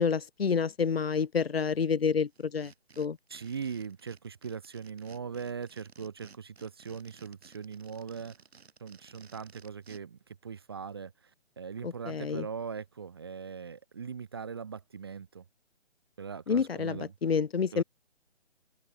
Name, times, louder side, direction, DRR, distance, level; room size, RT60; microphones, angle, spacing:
voice 1, 0.0-3.2 11.8-12.5 16.5-17.8, left 6 dB, 60° left, 1.5 m, -29 dB
sound 1, 2.3-10.0, right 5 dB, 70° right, 3.2 m, -56 dB
voice 2, 3.3-8.4 8.8-11.3 11.6-15.4 16.2-17.1 17.7-17.8, right 6 dB, 20° right, 0.8 m, -40 dB
hypercardioid pair, 170°, 34 cm